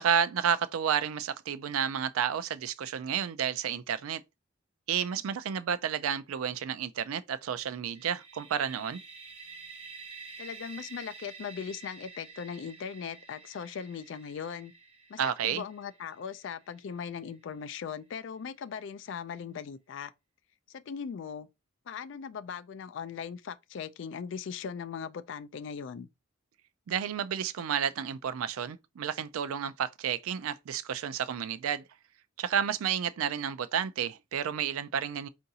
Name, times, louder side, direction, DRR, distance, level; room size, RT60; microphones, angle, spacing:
voice 1, 0.0-4.2 4.9-9.0 15.2-15.6 26.9-31.8 32.4-35.3, right 8 dB, 85° right, 0.4 m, -31 dB
sound 1, 7.9-17.6, right 4 dB, 30° right, 1.0 m, -49 dB
voice 2, 10.4-14.7 15.1-20.1 20.7-21.5 21.9-26.1, left 7 dB, 60° left, 0.3 m, -39 dB
4.6 x 2.5 x 2.7 m
head